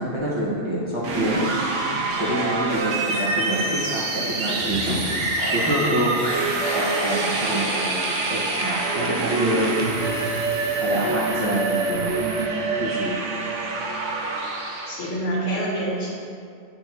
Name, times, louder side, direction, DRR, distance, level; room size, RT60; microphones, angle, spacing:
voice 1, 0.0-1.4 2.2-5.0 5.5-6.1 6.7-9.7 10.8-12.3 12.6-13.2, right 1 dB, 25° right, -9 dB, 1.5 m, -27 dB
sound 1, 1.0-15.2, right 3 dB, 85° right, 1.1 m, -26 dB
sound 2, 4.4-12.5, right 5 dB, 65° right, 0.3 m, -41 dB
sound 3, 4.5-9.9, left 1 dB, 40° left, 0.3 m, -35 dB
voice 2, 14.8-16.1, right 1 dB, 85° left, -5 dB, 1.8 m, -27 dB
8.9 x 4.4 x 3.0 m, 2.3 s
omnidirectional pair, 1.2 m